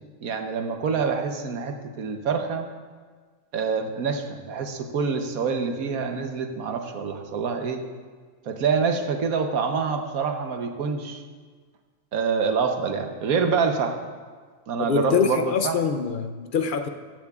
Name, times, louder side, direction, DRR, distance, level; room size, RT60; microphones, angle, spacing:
voice 1, 0.2-2.7 3.5-7.8 8.5-11.2 12.1-14.0 14.7-15.8, right 5 dB, 80° right, 5 dB, 1.4 m, -26 dB
voice 2, 14.8-16.9, left 6 dB, 60° left, 8 dB, 0.5 m, -24 dB
15.0 x 13.5 x 2.4 m, 1.5 s
omnidirectional pair, 1.5 m